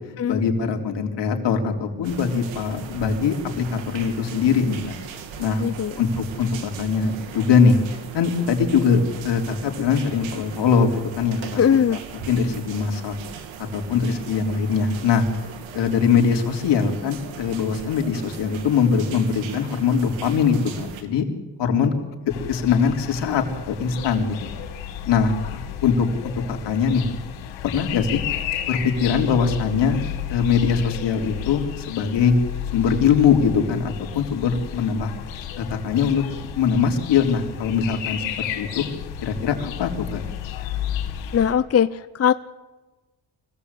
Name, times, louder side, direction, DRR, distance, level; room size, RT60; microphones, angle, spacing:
voice 1, 0.3-4.9 5.4-5.7 6.0-7.8 8.1-11.6 11.9-12.0 12.3-13.2 13.7-15.3 15.7-21.2 21.6-21.9 22.5-24.5 25.1-27.1 27.6-28.2 28.7-32.3 32.7-35.1 35.6-36.2 36.6-38.9 39.2-40.2, left 6 dB, 70° left, 3 dB, 3.8 m, -22 dB
sound 1, 2.0-21.0, right 7 dB, 90° right, 2.8 m, -39 dB
voice 2, 5.6-5.9 11.6-12.0 41.3-42.3, left 8 dB, 35° left, 13 dB, 0.7 m, -20 dB
sound 2, 22.3-41.5, left 10 dB, 90° left, 3.8 m, -32 dB
25.0 x 17.0 x 8.4 m, 1.2 s
cardioid pair, 85°, 44 cm